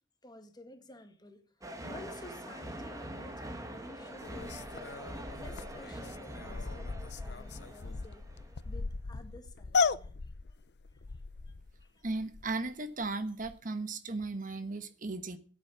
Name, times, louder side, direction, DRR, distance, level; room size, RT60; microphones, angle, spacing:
voice 1, 0.2-8.3 8.6-10.6 10.9-11.2 11.8-12.0, left 1 dB, 25° left, 2.0 m, -52 dB
sound 1, 1.6-8.7, right 1 dB, 20° right, 1.9 m, -44 dB
sound 2, 4.2-12.7 13.0-13.1 13.4-13.6, left 4 dB, 65° left, 0.7 m, -37 dB
voice 2, 12.0-15.4, right 3 dB, 50° right, 1.2 m, -36 dB
14.0 x 8.6 x 7.1 m
head